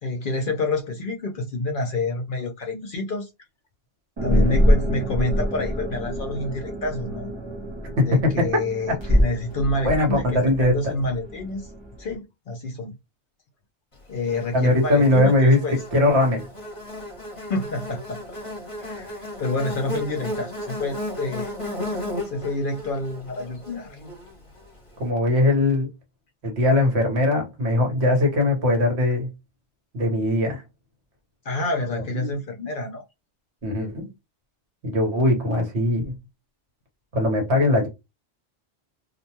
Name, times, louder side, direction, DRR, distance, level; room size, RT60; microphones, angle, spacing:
voice 1, 0.0-3.3 4.2-7.3 8.0-11.7 12.0-12.9 14.1-15.8 17.4-18.2 18.8-21.5 22.3-24.0 31.4-33.0, left 2 dB, 55° left, 0.6 m, -28 dB
sound 1, 4.2-12.2, equal, 30° right, 0.6 m, -25 dB
voice 2, 4.3-4.6 8.0-8.5 9.8-10.9 14.5-16.4 25.0-25.9 26.4-29.3 29.9-30.6 32.2-32.3 33.6-34.1 34.8-36.1 37.1-37.9, left 2 dB, 65° right, 1.3 m, -20 dB
Buzz, 14.3-24.7, left 1 dB, 30° left, 1.0 m, -34 dB
2.5 x 2.2 x 2.8 m
omnidirectional pair, 1.2 m